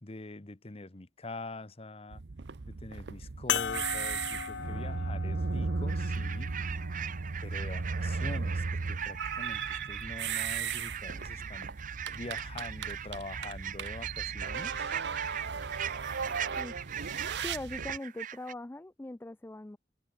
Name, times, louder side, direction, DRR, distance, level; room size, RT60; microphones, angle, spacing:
voice 1, 0.0-2.2 2.7-6.5 7.4-11.7 12.1-14.9, left 2 dB, 35° left, 1.1 m, -44 dB
sound 1, 2.1-18.0, right 4 dB, 75° right, 0.7 m, -36 dB
sound 2, 3.5-8.3 9.1-9.2 11.3-11.4, left 9 dB, 80° left, 0.6 m, -38 dB
Barnacle Geese viv par, 5.9-18.5, right 9 dB, 50° right, 1.0 m, -40 dB
voice 2, 17.4-19.8, left 1 dB, 15° left, 0.4 m, -41 dB
head